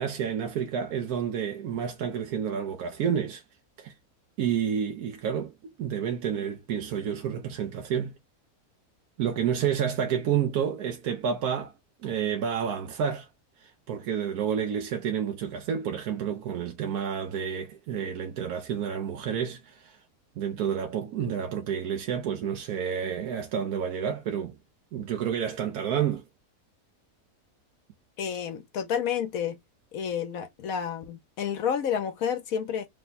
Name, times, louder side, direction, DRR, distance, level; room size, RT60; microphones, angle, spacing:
voice 1, 0.0-3.4 3.8-3.9 4.4-8.1 9.2-11.7 12.0-13.3 13.6-20.0 20.4-24.6 24.9-26.2, right 8 dB, 80° right, 1.2 m, -30 dB
voice 2, 28.2-29.6 29.9-32.9, left 8 dB, 70° left, 1.1 m, -30 dB
3.4 x 2.2 x 3.9 m
omnidirectional pair, 1.6 m